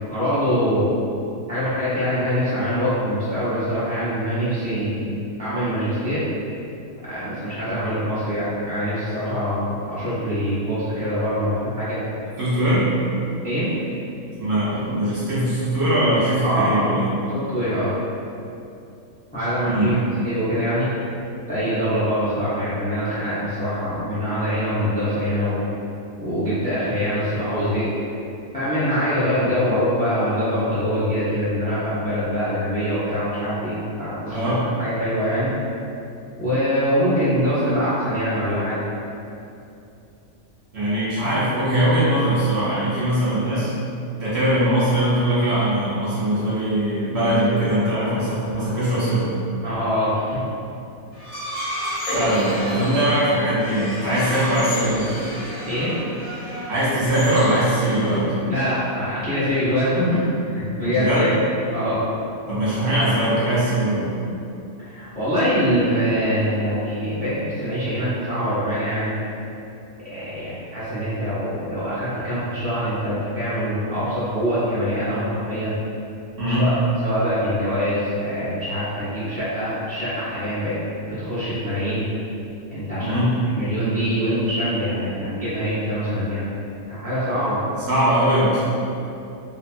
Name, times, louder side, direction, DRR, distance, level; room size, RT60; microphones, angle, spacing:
voice 1, 0.1-0.9 1.5-5.1 5.4-6.2 7.1-12.0 13.4-13.7 16.4-16.9 17.3-17.9 19.3-20.0 20.2-20.9 21.5-25.6 26.2-27.9 28.5-35.5 36.4-38.8 49.6-50.4 55.6-56.0 58.5-60.2 60.5-61.3 61.7-62.0 64.8-69.2 70.1-75.8 76.5-76.7 77.0-80.8 81.1-82.1 82.7-83.2 83.5-86.5 86.9-87.6, equal, 10° left, -13 dB, 0.4 m, -24 dB
voice 2, 12.4-12.8 14.4-17.1 19.7-19.9 34.3-34.6 40.7-43.7 44.2-49.4 52.1-55.1 56.7-58.3 61.0-61.3 62.5-64.1 76.4-76.7 83.0-83.3 87.9-88.6, right 1 dB, 60° right, -9 dB, 0.7 m, -21 dB
sound 1, 51.1-58.4, equal, 40° left, 0.8 m, -30 dB
2.8 x 2.2 x 2.5 m, 2.7 s
omnidirectional pair, 1.5 m